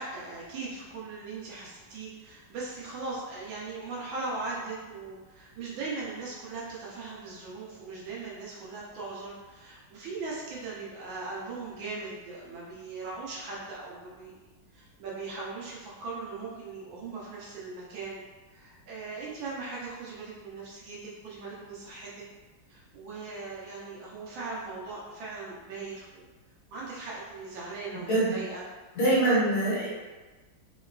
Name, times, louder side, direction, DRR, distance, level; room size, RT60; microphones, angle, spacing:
voice 1, 0.0-14.3 14.7-18.2 18.5-22.2 22.7-26.2 26.7-28.6 29.2-29.3, right 3 dB, 90° right, -6 dB, 1.4 m, -39 dB
voice 2, 27.9-28.3 28.9-29.9, right 2 dB, 60° left, -8 dB, 1.5 m, -24 dB
3.7 x 2.3 x 2.3 m, 1.3 s
omnidirectional pair, 2.0 m